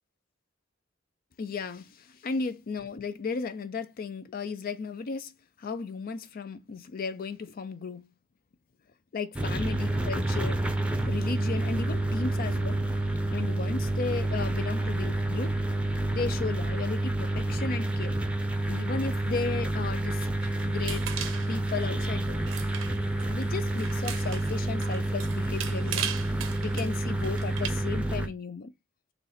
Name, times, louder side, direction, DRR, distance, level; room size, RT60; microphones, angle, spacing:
voice 1, 1.4-5.3 5.6-8.1 9.1-10.6 11.0-12.8 13.3-15.6 16.1-18.2 18.7-20.3 20.6-22.5 23.3-26.1 26.6-28.7, left 4 dB, 45° left, 0.4 m, -35 dB
sound 1, 9.3-28.3, right 1 dB, 5° right, 0.6 m, -29 dB
sound 2, 20.4-27.7, right 9 dB, 85° right, 0.8 m, -39 dB
4.1 x 3.0 x 4.0 m
head